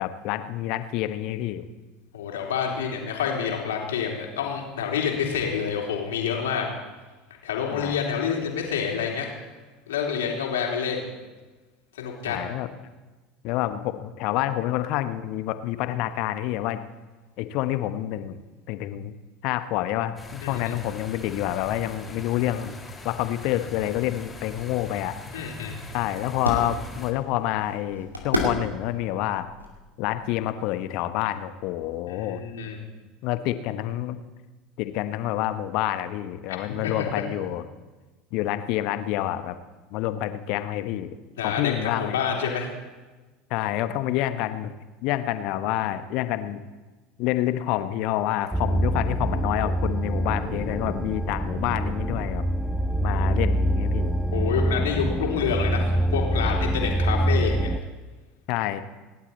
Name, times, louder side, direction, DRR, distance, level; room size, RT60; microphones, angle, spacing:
voice 1, 0.0-1.6 7.7-8.0 12.3-12.7 13.4-16.8 17.4-18.4 18.7-19.1 19.4-22.8 23.0-25.2 25.9-29.5 30.0-32.4 33.2-34.2 34.8-37.6 38.3-39.6 39.9-41.1 41.4-42.2 43.5-46.6 47.2-52.5 53.0-54.1 58.5-58.8, left 13 dB, 50° left, 11 dB, 1.0 m, -28 dB
voice 2, 2.1-6.7 7.4-9.3 9.9-11.1 12.0-12.4 20.4-20.6 25.3-25.8 32.1-32.8 36.8-36.9 41.4-42.7 54.3-57.7, left 7 dB, 65° left, 0 dB, 3.3 m, -28 dB
sound 1, 20.2-27.1, left 2 dB, 15° left, 4.1 m, -41 dB
sound 2, 24.3-30.6, left 1 dB, 85° right, 2.7 m, -34 dB
sound 3, 48.5-57.8, right 1 dB, 5° right, 0.6 m, -25 dB
27.5 x 11.5 x 4.2 m, 1.2 s
figure-of-eight pair, 70°, 0 cm